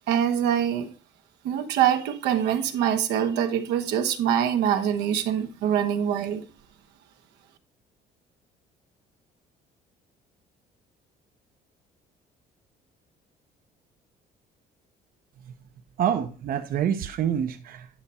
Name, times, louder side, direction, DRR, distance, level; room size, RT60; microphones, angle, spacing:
voice 1, 0.1-0.9 1.4-6.4, right 9 dB, 85° right, 1.4 m, -24 dB
voice 2, 16.0-17.9, right 9 dB, 60° right, 0.9 m, -27 dB
10.5 x 5.5 x 4.3 m
cardioid pair, 110°, 17 cm